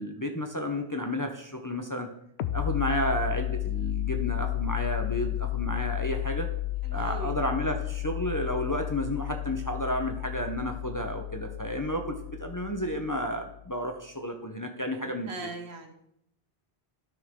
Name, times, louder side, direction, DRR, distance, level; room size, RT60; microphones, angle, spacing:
voice 1, 0.0-2.1 2.5-6.5 6.9-15.5, equal, 20° left, 4 dB, 0.7 m, -32 dB
sound 1, 2.4-13.7, left 17 dB, 80° left, 0.8 m, -33 dB
voice 2, 6.8-7.3 15.0-15.9, right 2 dB, 75° right, 4 dB, 1.5 m, -40 dB
12.5 x 6.3 x 3.7 m, 0.75 s
omnidirectional pair, 1.1 m